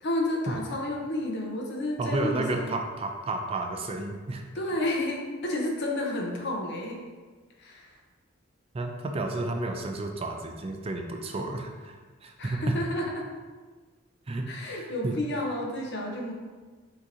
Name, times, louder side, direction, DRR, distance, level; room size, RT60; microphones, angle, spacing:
voice 1, 0.0-2.7 4.5-7.0 7.6-7.9 12.4-13.3 14.5-16.3, left 1 dB, 60° left, 0 dB, 0.7 m, -31 dB
voice 2, 2.0-4.4 8.7-12.7 14.3-15.2, right 2 dB, 30° right, 3 dB, 0.4 m, -32 dB
6.1 x 2.8 x 2.6 m, 1.4 s
head